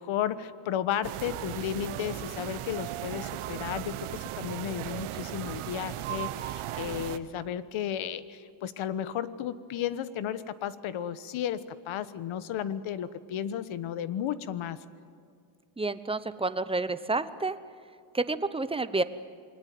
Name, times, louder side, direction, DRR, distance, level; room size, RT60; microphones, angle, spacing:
voice 1, 0.0-14.8, left 10 dB, 75° left, 14 dB, 1.3 m, -33 dB
sound 1, 1.0-7.2, right 13 dB, 85° right, 1.2 m, -36 dB
voice 2, 15.8-17.6 18.1-19.0, right 3 dB, 10° right, 12 dB, 0.9 m, -29 dB
28.0 x 21.5 x 9.5 m, 2.3 s
cardioid pair, 130°, 49 cm